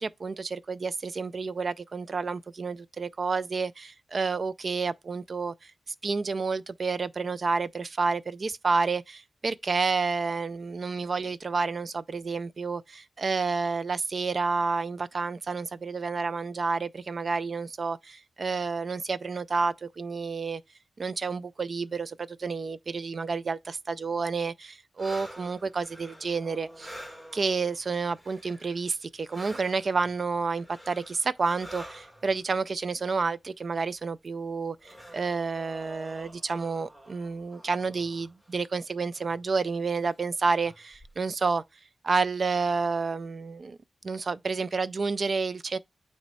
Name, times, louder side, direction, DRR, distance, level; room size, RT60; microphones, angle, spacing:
voice 1, 0.0-5.7 6.0-20.6 21.0-27.0 27.3-41.6 42.0-43.8 44.0-45.8, right 4 dB, 35° right, 0.3 m, -30 dB
sound 1, 25.0-28.9 29.2-32.5 33.5-33.6 33.9-38.6 39.1-39.4 39.9-40.1 40.6-41.4, equal, 10° right, 1.5 m, -48 dB
9.1 x 3.2 x 4.1 m
wide cardioid pair, 175°, 0 cm